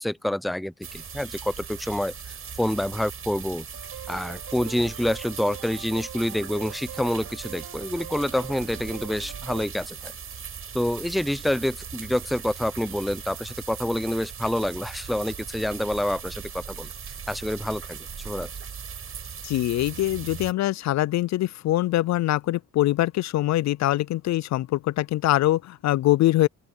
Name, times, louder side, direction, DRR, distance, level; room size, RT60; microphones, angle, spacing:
voice 1, 0.0-2.1 2.6-3.7 4.1-10.1 10.7-16.9 17.3-18.0 18.2-18.5, left 1 dB, ahead, 0.6 m, -27 dB
sound 1, 0.8-20.5, right 7 dB, 50° right, 5.9 m, -39 dB
sound 2, 3.7-9.7, right 11 dB, 90° right, 3.9 m, -43 dB
voice 2, 19.4-26.5, left 15 dB, 65° left, 0.5 m, -23 dB
open air
cardioid pair, 90°, 30 cm